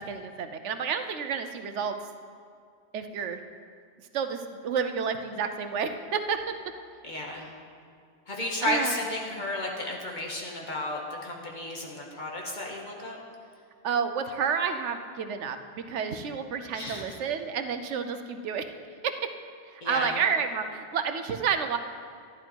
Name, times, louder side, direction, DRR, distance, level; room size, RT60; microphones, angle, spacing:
voice 1, 0.0-1.9 2.9-3.4 4.1-6.4 8.6-8.9 13.8-18.7 19.0-19.1 19.7-21.8, right 6 dB, 85° right, 8 dB, 1.1 m, -30 dB
voice 2, 7.0-7.4 8.3-13.2 16.7-17.2 19.8-20.2, left 1 dB, 40° left, -1 dB, 1.8 m, -33 dB
12.0 x 11.0 x 4.6 m, 2.3 s
omnidirectional pair, 1.2 m